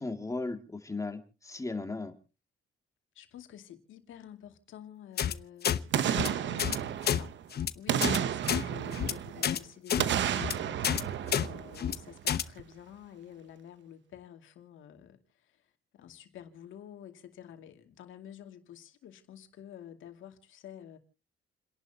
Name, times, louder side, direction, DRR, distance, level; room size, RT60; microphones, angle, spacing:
voice 1, 0.0-2.1, left 3 dB, 15° left, 2.4 m, -36 dB
voice 2, 3.1-7.4 7.7-15.6 15.9-21.0, left 10 dB, 80° left, 2.5 m, -49 dB
sound 1, 5.2-5.3 5.6-5.8 6.1-6.3 6.6-6.8 7.0-7.2 7.5-7.7 8.0-8.2 8.5-8.6 8.9-9.1 9.4-9.6 9.9-10.0 10.3-10.5 10.8-11.0 11.3-11.5 11.8-12.0 12.3-12.4, left 9 dB, 55° left, 1.0 m, -29 dB
Boom, 5.9-7.4 7.9-9.5 10.0-12.2 12.6-12.7, right 10 dB, 65° right, 1.0 m, -32 dB
30.0 x 11.5 x 2.9 m
cardioid pair, 90°, 20 cm